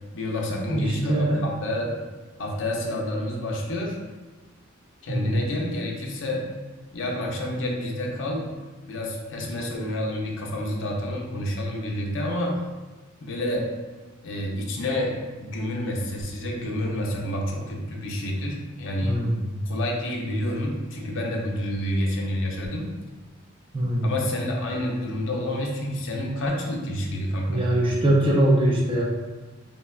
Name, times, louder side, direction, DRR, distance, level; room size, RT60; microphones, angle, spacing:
voice 1, 0.1-2.1 2.4-4.0 5.0-6.5 6.9-8.5 8.8-12.6 13.2-13.7 14.2-19.3 19.7-22.9 24.0-27.7, left 1 dB, 65° left, -1 dB, 0.5 m, -29 dB
voice 2, 0.7-1.4 5.1-5.4 19.0-19.4 23.7-24.1 27.5-29.0, right 1 dB, 25° right, -3 dB, 0.5 m, -22 dB
3.5 x 2.2 x 2.3 m, 1.2 s
head